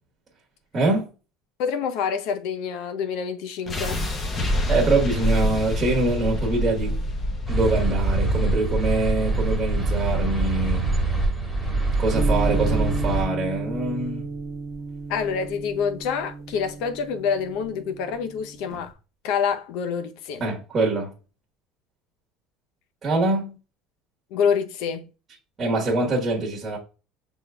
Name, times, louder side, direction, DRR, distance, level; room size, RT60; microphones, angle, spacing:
voice 1, 0.7-1.1 4.7-6.9 7.5-10.8 12.0-14.2 20.4-21.1 23.0-23.5 25.6-26.8, right 2 dB, 25° right, 1.3 m, -24 dB
voice 2, 1.6-4.0 15.1-18.9 19.2-20.5 24.3-25.1, left 6 dB, 70° left, 0.6 m, -27 dB
sound 1, 3.7-15.7, equal, 25° left, 0.8 m, -29 dB
sound 2, 7.5-13.2, right 3 dB, 10° left, 1.5 m, -24 dB
sound 3, 12.1-18.9, right 4 dB, 40° right, 1.2 m, -33 dB
5.9 x 3.6 x 2.2 m
cardioid pair, 140°, 0 cm